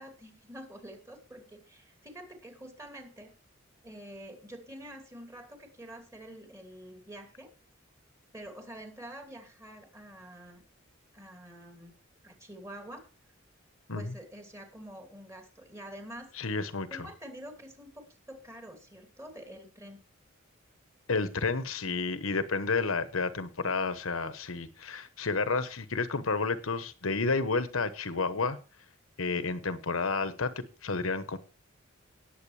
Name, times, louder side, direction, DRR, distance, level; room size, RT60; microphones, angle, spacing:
voice 1, 0.0-3.3 3.8-7.5 8.3-10.6 11.1-12.0 12.2-13.0 13.9-16.3 16.9-20.0, right 1 dB, 15° right, 3 dB, 2.6 m, -47 dB
voice 2, 16.4-17.1 21.1-28.6 29.2-30.5 30.8-31.4, left 4 dB, 75° left, 12 dB, 1.1 m, -31 dB
18.5 x 8.0 x 3.3 m, 0.33 s
head